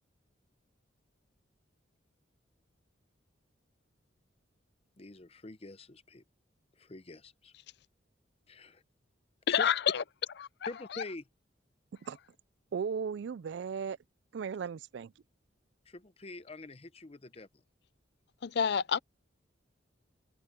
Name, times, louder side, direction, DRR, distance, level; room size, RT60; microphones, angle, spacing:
voice 1, 5.0-6.2 6.8-7.5 8.5-8.8 9.5-9.7 10.7-11.2 15.9-17.5, left 3 dB, 30° left, 0.8 m, -45 dB
voice 2, 9.5-10.0 18.4-19.0, left 8 dB, 60° left, 0.5 m, -27 dB
voice 3, 12.7-14.0 14.3-15.1, right 6 dB, 65° right, 0.3 m, -36 dB
head